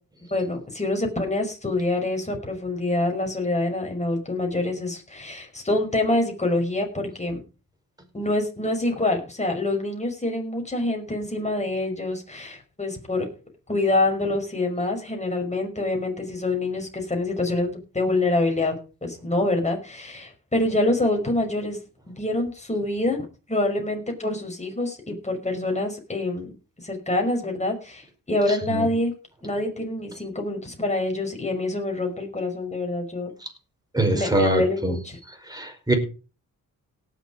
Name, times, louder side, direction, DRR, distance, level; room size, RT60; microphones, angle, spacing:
voice 1, 0.3-7.4 8.1-13.3 13.7-18.8 19.0-21.8 22.1-26.5 26.8-29.1 29.4-33.3 34.1-35.2, left 2 dB, 20° left, 2 dB, 5.4 m, -26 dB
voice 2, 33.9-35.0 35.5-35.9, right 1 dB, 10° right, 3 dB, 5.2 m, -23 dB
18.0 x 7.4 x 5.1 m, 0.35 s
cardioid pair, 70°, 34 cm